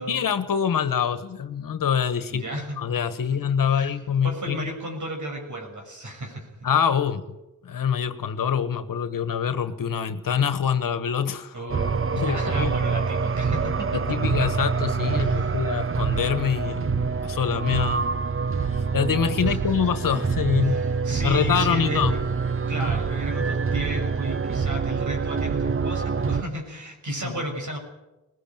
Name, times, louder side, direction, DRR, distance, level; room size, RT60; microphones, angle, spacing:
voice 1, 0.1-2.4 2.8-4.7 6.6-7.4 7.6-11.5 12.2-12.8 13.9-18.1 18.6-20.8 21.2-22.1 27.2-27.3, left 7 dB, 70° left, 12 dB, 1.5 m, -25 dB
voice 2, 2.3-2.8 3.7-6.5 11.5-14.3 15.2-15.6 19.5-19.6 20.6-22.2 22.7-27.8, right 1 dB, 55° right, 2 dB, 6.6 m, -34 dB
sound 1, 11.7-26.4, right 5 dB, 40° right, 0.9 m, -26 dB
20.5 x 18.0 x 9.1 m, 0.99 s
cardioid pair, 75°, 34 cm